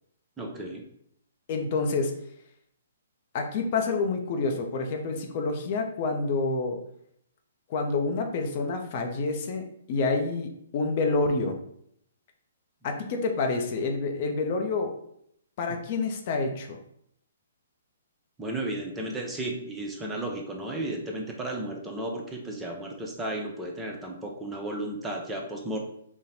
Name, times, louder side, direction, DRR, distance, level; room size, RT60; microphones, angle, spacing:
voice 1, 0.4-0.8 18.4-25.8, right 1 dB, 10° right, 0 dB, 0.6 m, -34 dB
voice 2, 1.5-2.1 3.3-6.8 7.7-11.6 12.8-14.9 15.6-16.8, left 3 dB, 45° left, 3 dB, 0.6 m, -28 dB
4.0 x 2.1 x 4.0 m, 0.70 s
figure-of-eight pair, 130°, 0 cm